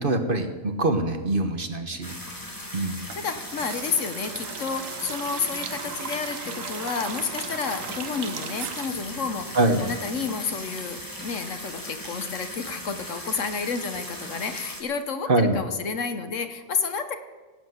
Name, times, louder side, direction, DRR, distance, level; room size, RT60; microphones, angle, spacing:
voice 1, 0.0-2.1 2.7-3.1 9.5-9.9 15.3-15.6, right 2 dB, 40° right, 7 dB, 1.3 m, -24 dB
sound 1, 2.0-14.8, left 1 dB, 15° left, 2.5 m, -38 dB
voice 2, 3.1-17.2, left 5 dB, 65° left, 9 dB, 1.4 m, -30 dB
sound 2, 3.1-10.1 10.4-10.5, right 8 dB, 70° right, 1.2 m, -38 dB
17.5 x 8.0 x 8.0 m, 1.3 s
omnidirectional pair, 1.5 m